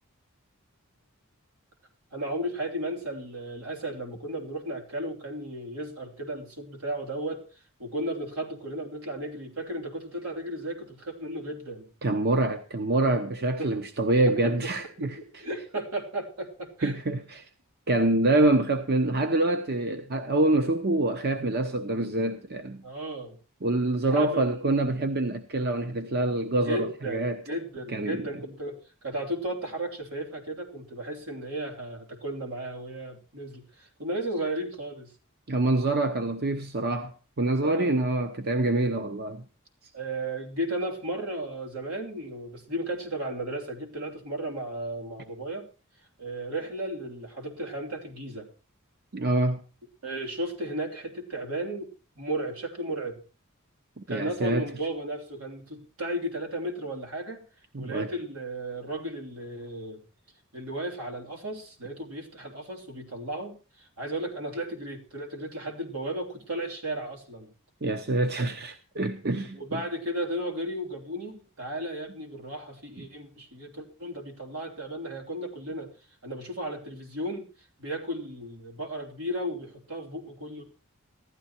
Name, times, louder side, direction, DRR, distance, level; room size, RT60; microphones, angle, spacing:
voice 1, 2.1-7.4 7.8-11.9 13.6-13.7 14.1-14.5 15.0-16.9 22.8-23.4 24.1-24.6 26.6-35.1 37.6-37.9 39.9-45.6 46.2-48.5 50.0-51.9 52.2-53.2 54.1-57.4 57.8-60.0 60.5-67.5 69.5-75.9 76.2-77.5 77.8-80.6, right 1 dB, 80° right, 3.4 m, -34 dB
voice 2, 12.0-15.4 16.8-17.5 17.9-22.8 23.6-27.4 27.9-28.2 35.5-39.4 49.1-49.6 54.0-54.7 57.7-58.1 67.8-69.8, right 2 dB, 50° right, 1.0 m, -26 dB
15.5 x 12.5 x 4.4 m
head